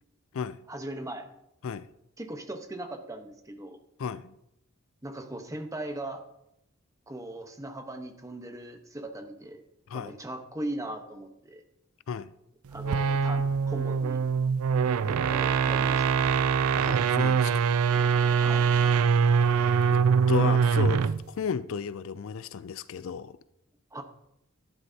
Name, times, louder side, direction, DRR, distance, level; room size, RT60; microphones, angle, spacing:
voice 1, 0.7-1.3 2.2-3.8 5.0-6.2 7.1-9.6 9.9-11.6 12.7-14.2 15.0-16.3 18.4-18.7 20.4-20.5 23.9-24.0, right 1 dB, 15° right, 1.0 m, -39 dB
voice 2, 4.0-4.3 9.9-10.2 12.1-12.3 16.7-17.7 19.9-20.0 20.3-23.4, left 7 dB, 65° left, 0.4 m, -33 dB
sound 1, 12.7-21.2, right 6 dB, 75° right, 0.4 m, -23 dB
12.5 x 11.0 x 2.8 m
head